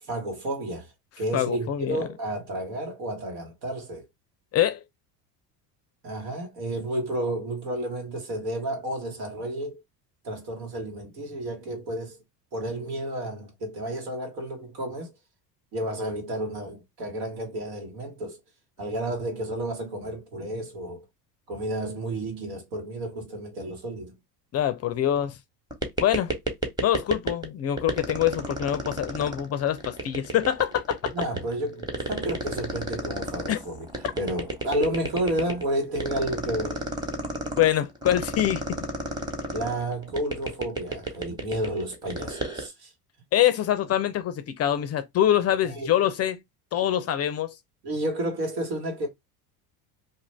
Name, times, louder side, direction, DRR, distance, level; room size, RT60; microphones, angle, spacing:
voice 1, 0.0-4.0 6.0-9.8 10.2-12.2 12.5-15.1 15.7-18.4 18.8-21.0 21.5-24.1 31.1-33.9 34.1-36.8 39.5-42.9 45.6-45.9 47.8-49.1, right 1 dB, 80° right, 1.7 m, -31 dB
voice 2, 1.3-2.1 4.5-4.8 24.5-25.4 26.0-26.3 26.8-31.1 33.5-33.6 37.6-38.8 43.3-46.4 46.7-47.5, left 11 dB, 35° left, 0.4 m, -25 dB
sound 1, 25.7-27.5 27.8-42.7, right 2 dB, 10° right, 1.1 m, -31 dB
2.7 x 2.4 x 3.3 m
hypercardioid pair, 85°, 47 cm